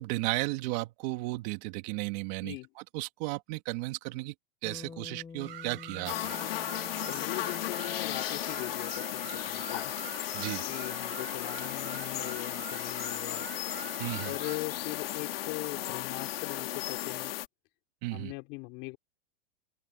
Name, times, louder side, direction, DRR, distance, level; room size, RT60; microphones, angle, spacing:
voice 1, 0.0-4.3 4.6-6.3 10.3-10.7 14.0-14.3 18.0-18.3, right 22 dB, 50° right, 2.0 m, -34 dB
Bass guitar, 4.6-9.1, left 5 dB, 15° left, 2.9 m, -49 dB
sound 1, 5.4-14.6, right 12 dB, 80° right, 7.6 m, -45 dB
sound 2, 6.1-17.5, left 14 dB, 75° left, 2.1 m, -35 dB
voice 2, 7.1-9.9 10.6-13.5 14.2-17.3 18.1-19.0, left 28 dB, 45° left, 4.5 m, -40 dB
supercardioid pair, 145°, 29 cm